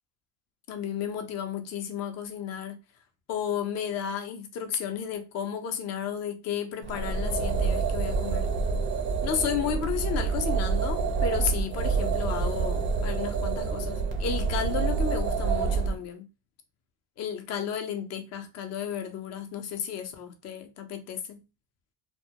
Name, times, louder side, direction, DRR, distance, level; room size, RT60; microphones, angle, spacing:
voice 1, 0.7-2.8 3.3-8.5 9.2-16.3 17.2-21.4, left 8 dB, 35° left, 0.5 m, -33 dB
sound 1, 6.8-16.0, right 5 dB, 30° right, 0.4 m, -27 dB
2.2 x 2.1 x 2.7 m
supercardioid pair, 130°, 44 cm